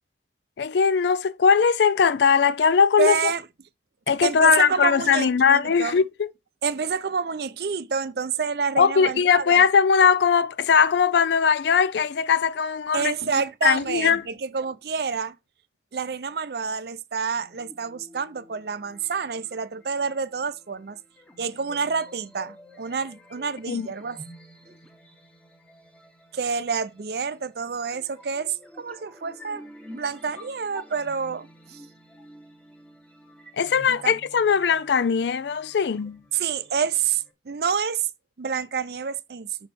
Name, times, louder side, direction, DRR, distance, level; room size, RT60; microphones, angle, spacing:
voice 1, 0.6-3.3 4.1-6.3 8.8-13.1 13.6-14.3 23.7-23.9 33.6-36.2, left 6 dB, 80° left, 0.4 m, -20 dB
voice 2, 3.0-3.4 4.2-6.0 6.6-9.6 12.9-15.3 15.9-21.0 21.4-24.2 26.3-29.7 29.9-31.8 33.9-34.1 36.3-38.1 38.4-39.6, right 6 dB, 65° right, 0.5 m, -28 dB
sound 1, 17.3-37.3, equal, 5° left, 0.9 m, -49 dB
5.5 x 5.4 x 4.2 m
head